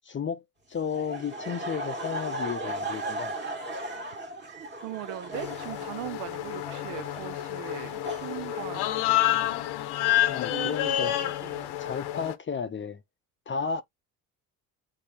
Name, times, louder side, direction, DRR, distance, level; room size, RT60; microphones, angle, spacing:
voice 1, 0.1-0.4 0.7-3.3 10.3-11.1 11.8-13.0 13.5-13.8, left 6 dB, 30° left, 0.6 m, -33 dB
Laughter, 0.9-9.4, right 1 dB, 25° right, 1.6 m, -37 dB
voice 2, 4.8-9.1 10.4-11.8, right 15 dB, 75° right, 0.6 m, -40 dB
sound 1, 5.3-12.3, left 14 dB, 70° left, 0.8 m, -29 dB
6.7 x 2.6 x 2.9 m
supercardioid pair, 90°, 42 cm